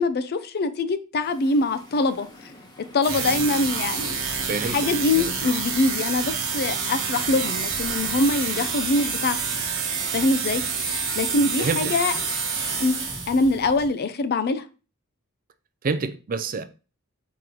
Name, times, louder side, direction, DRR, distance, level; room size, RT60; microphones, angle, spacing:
voice 1, 0.0-2.5 2.9-4.2 4.6-9.4 10.1-10.6 11.1-12.1 12.8-14.7, left 3 dB, 45° left, 0.4 m, -24 dB
sound 1, 1.2-13.2, left 1 dB, 20° left, 1.0 m, -46 dB
sound 2, 3.0-13.9, right 1 dB, 10° right, 1.4 m, -44 dB
sound 3, 3.0-13.6, right 5 dB, 60° right, 1.0 m, -28 dB
voice 2, 11.6-12.2 15.8-16.6, right 4 dB, 40° right, 0.4 m, -28 dB
4.7 x 3.1 x 3.7 m
head